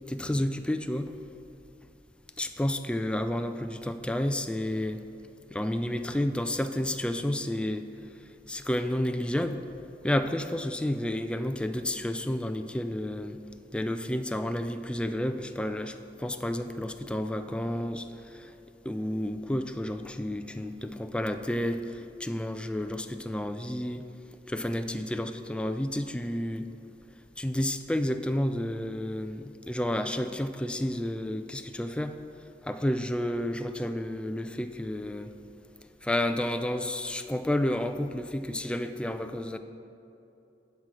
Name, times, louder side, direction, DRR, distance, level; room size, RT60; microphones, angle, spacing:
voice 1, 0.1-1.1 2.4-5.0 5.5-7.9 8.5-9.6 10.0-13.4 13.7-18.5 18.8-24.1 24.5-26.7 27.4-32.2 32.6-35.3 36.0-39.6, left 1 dB, 5° left, 8 dB, 0.3 m, -31 dB
9.4 x 5.9 x 4.7 m, 2.9 s
head